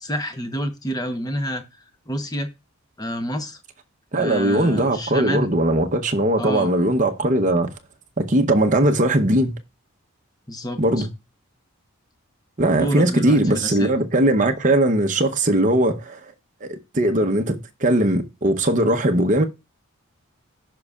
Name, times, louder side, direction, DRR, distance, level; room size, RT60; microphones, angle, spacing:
voice 1, 0.0-1.6 2.1-2.5 3.0-3.6 4.1-5.5 6.4-6.7 10.5-11.1 12.7-13.9, equal, 15° left, 0.8 m, -28 dB
voice 2, 4.1-7.7 8.2-9.6 10.8-11.1 12.6-16.2 16.6-19.4, right 1 dB, 35° right, 0.8 m, -19 dB
15.0 x 5.4 x 2.4 m
head